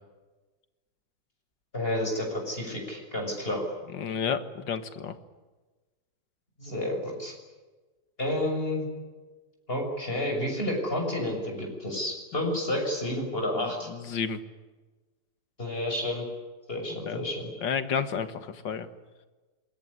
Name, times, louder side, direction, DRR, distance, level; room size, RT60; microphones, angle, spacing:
voice 1, 1.7-3.6 6.6-7.3 8.2-8.8 9.7-13.9 15.6-16.3 16.7-17.5, left 1 dB, 30° left, 1 dB, 6.8 m, -30 dB
voice 2, 3.9-5.2 13.6-14.4 17.1-17.2 17.6-18.9, left 6 dB, 90° left, 10 dB, 2.3 m, -31 dB
27.0 x 22.5 x 9.9 m, 1.2 s
omnidirectional pair, 1.9 m